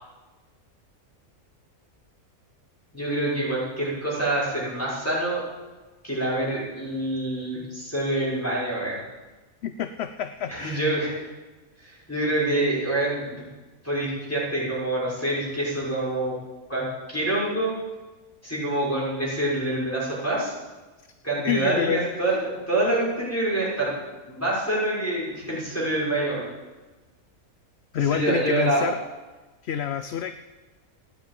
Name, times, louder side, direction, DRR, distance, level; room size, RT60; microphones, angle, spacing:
voice 1, 2.9-5.4 6.0-9.0 10.5-11.2 11.8-13.4 13.8-16.3 16.7-17.7 18.4-20.5 21.2-23.9 24.3-26.5 27.9-28.8, right 1 dB, 10° left, -7 dB, 6.0 m, -26 dB
voice 2, 9.6-10.8 21.5-22.1 27.9-29.0 29.6-30.3, left 9 dB, 60° left, 10 dB, 0.8 m, -27 dB
15.0 x 9.7 x 8.9 m, 1.2 s
omnidirectional pair, 1.5 m